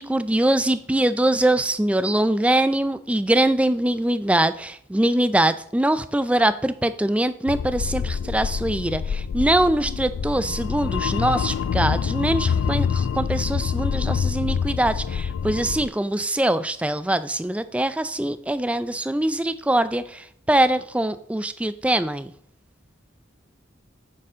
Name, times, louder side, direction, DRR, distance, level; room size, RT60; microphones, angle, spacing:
voice 1, 0.0-22.3, right 1 dB, 5° right, 13 dB, 0.3 m, -23 dB
sound 1, 7.5-15.9, left 7 dB, 75° left, 0.3 m, -26 dB
9.0 x 6.7 x 3.8 m, 0.66 s
head